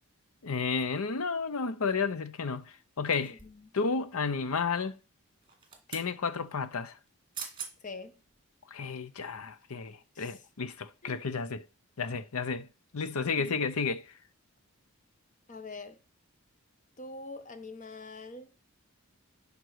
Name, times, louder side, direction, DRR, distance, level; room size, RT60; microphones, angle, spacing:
voice 1, 0.4-3.4 3.7-5.0 5.9-6.9 8.7-11.6 12.0-12.7 12.9-14.1, left 5 dB, 80° left, 0.7 m, -32 dB
sound 1, 3.1-3.7 5.4-6.1 7.1-7.2 7.3-7.7 8.3-8.4, right 7 dB, 20° right, 1.7 m, -43 dB
voice 2, 3.3-3.7 7.8-8.2 10.1-10.4 11.0-11.2 13.4-13.6 15.5-16.0 17.0-18.5, left 3 dB, 35° left, 0.9 m, -44 dB
11.5 x 5.2 x 4.7 m
head